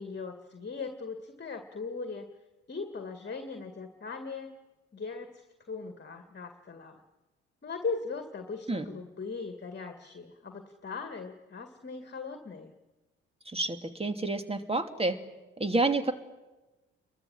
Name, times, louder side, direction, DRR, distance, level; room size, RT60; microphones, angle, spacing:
voice 1, 0.0-2.3 2.7-4.5 4.9-7.0 7.6-12.7, left 4 dB, 30° left, 7 dB, 2.2 m, -39 dB
voice 2, 13.5-15.2 15.6-16.1, right 2 dB, 15° right, 8 dB, 2.7 m, -29 dB
29.5 x 23.0 x 7.6 m, 1.1 s
figure-of-eight pair, 40°, 34 cm